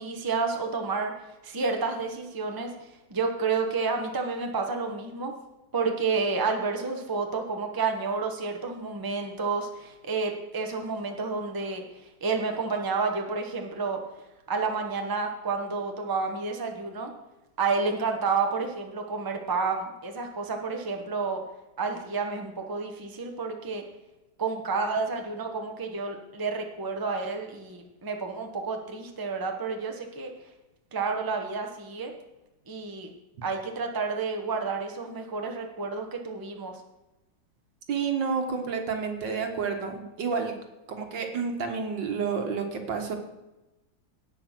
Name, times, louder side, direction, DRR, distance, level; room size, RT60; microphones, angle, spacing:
voice 1, 0.0-2.7 3.1-5.3 5.7-11.8 12.2-14.0 14.5-17.1 17.6-21.4 21.8-23.8 24.4-30.3 30.9-32.1 32.7-33.1 33.4-36.8, right 4 dB, 15° right, 3 dB, 0.9 m, -30 dB
voice 2, 37.9-40.5 40.9-43.2, right 5 dB, 70° right, 4 dB, 2.1 m, -30 dB
17.0 x 5.8 x 6.0 m, 1.0 s
omnidirectional pair, 2.1 m